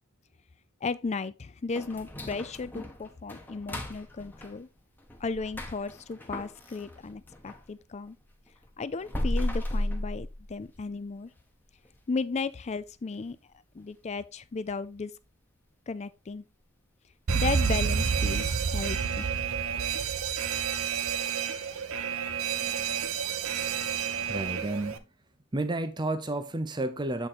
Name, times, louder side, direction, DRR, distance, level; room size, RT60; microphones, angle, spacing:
voice 1, 0.8-4.7 5.2-8.2 8.8-11.3 12.1-13.4 13.7-15.1 15.9-16.5 17.3-19.3, left 4 dB, 30° left, 0.4 m, -35 dB
sound 1, 1.7-7.7 8.1-10.9 11.3-11.4 11.8-12.0 12.5-12.8 13.1-13.2 13.8-13.9, left 1 dB, 10° left, 0.9 m, -35 dB
Alarm, 17.3-25.0, right 7 dB, 65° right, 0.7 m, -29 dB
voice 2, 24.3-25.0 25.5-27.3, right 2 dB, 20° right, 0.6 m, -31 dB
7.9 x 3.8 x 4.2 m
head